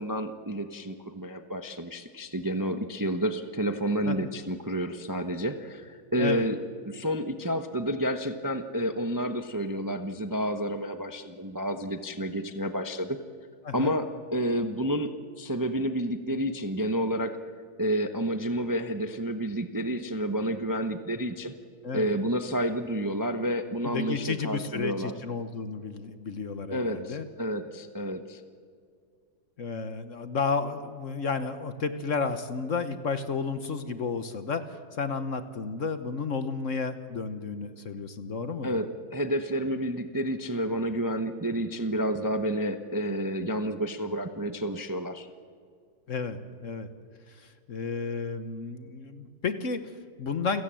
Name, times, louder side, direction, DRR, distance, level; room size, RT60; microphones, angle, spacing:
voice 1, 0.0-6.6 6.8-13.2 13.7-15.1 15.4-17.4 17.8-21.5 21.9-25.1 26.7-28.4 38.6-45.3, equal, 15° right, 8 dB, 0.7 m, -30 dB
voice 2, 23.8-27.3 29.6-38.8 46.1-46.9 47.3-50.6, left 5 dB, 50° left, 11 dB, 1.3 m, -32 dB
29.0 x 17.0 x 7.7 m, 2.2 s
omnidirectional pair, 1.9 m